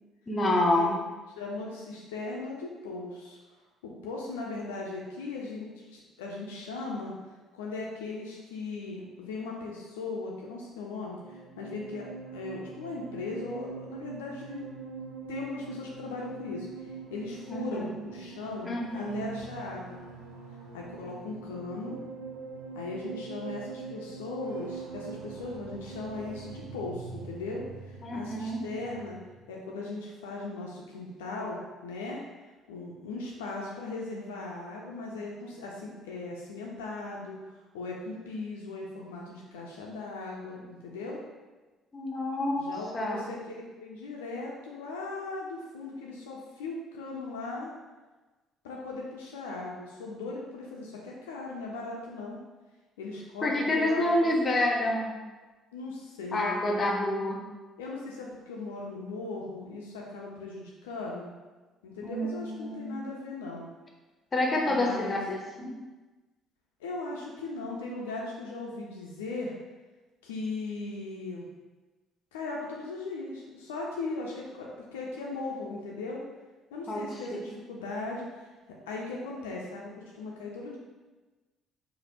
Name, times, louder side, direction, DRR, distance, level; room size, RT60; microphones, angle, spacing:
voice 1, 0.3-1.0 17.5-17.9 18.6-19.3 28.0-28.6 41.9-43.2 53.4-55.1 56.3-57.4 62.0-62.9 64.3-65.7 76.9-77.0, left 1 dB, 35° left, 0 dB, 0.6 m, -28 dB
voice 2, 1.4-3.4 3.8-7.1 7.5-12.1 12.3-14.7 15.3-20.0 20.7-22.0 22.7-29.2 29.5-32.2 32.7-37.4 37.7-41.2 42.6-47.7 48.6-52.4 53.0-54.3 55.7-56.6 57.8-61.3 61.8-63.7 64.7-65.2 66.8-69.6 70.2-71.5 72.3-76.2 76.7-78.5 78.9-80.8, left 3 dB, 80° left, -2 dB, 0.3 m, -38 dB
sound 1, 11.0-29.5, right 4 dB, 80° right, 0.4 m, -43 dB
3.1 x 2.0 x 2.8 m, 1.2 s
hypercardioid pair, 50°, 0 cm